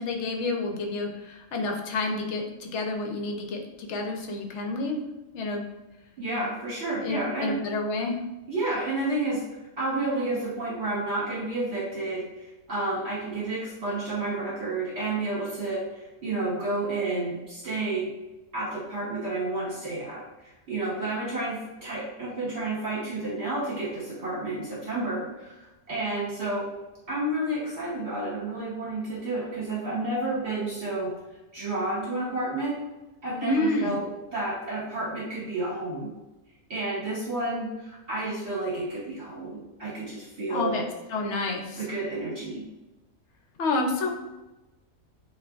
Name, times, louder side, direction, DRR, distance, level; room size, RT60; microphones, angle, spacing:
voice 1, 0.0-5.0 5.3-5.6 7.0-8.2 33.4-34.0 40.5-41.8 43.6-44.1, left 2 dB, 60° left, 2 dB, 1.0 m, -29 dB
voice 2, 6.2-7.5 8.5-9.4 9.8-18.1 18.5-26.7 27.1-31.1 31.5-32.8 33.2-34.1 34.3-36.1 36.7-40.8 41.8-42.7, right 2 dB, 50° right, -7 dB, 1.4 m, -30 dB
7.5 x 2.6 x 2.4 m, 1.1 s
omnidirectional pair, 1.4 m